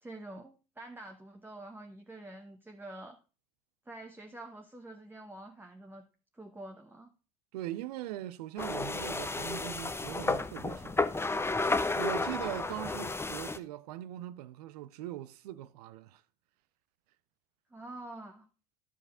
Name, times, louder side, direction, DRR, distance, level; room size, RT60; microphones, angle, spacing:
voice 1, 0.0-3.2 3.9-6.1 6.3-7.1 17.7-18.5, right 2 dB, 10° right, 1.0 m, -47 dB
voice 2, 7.5-11.1 11.9-16.2, right 14 dB, 85° right, 0.6 m, -41 dB
sound 1, 8.6-13.6, left 3 dB, 10° left, 0.7 m, -32 dB
11.0 x 4.7 x 4.8 m
hypercardioid pair, 75°, 20 cm